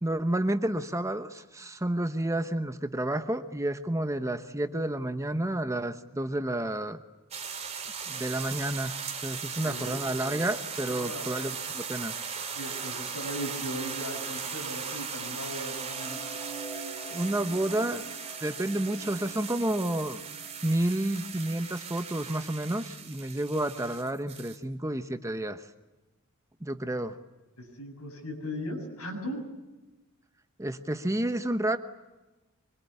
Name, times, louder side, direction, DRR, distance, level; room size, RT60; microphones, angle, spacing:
voice 1, 0.0-7.0 8.1-12.2 17.1-18.1 18.4-20.2 20.6-25.7 26.6-27.2 30.6-31.8, right 1 dB, 15° right, 9 dB, 1.0 m, -30 dB
sound 1, 7.3-24.6, right 6 dB, 30° right, 2.8 m, -38 dB
voice 2, 9.6-10.0 10.9-11.5 12.5-16.2 27.6-29.4, equal, 75° left, 2 dB, 7.7 m, -38 dB
sound 2, 15.7-21.9, right 3 dB, 10° left, 7.5 m, -46 dB
25.0 x 23.0 x 9.8 m, 1.1 s
head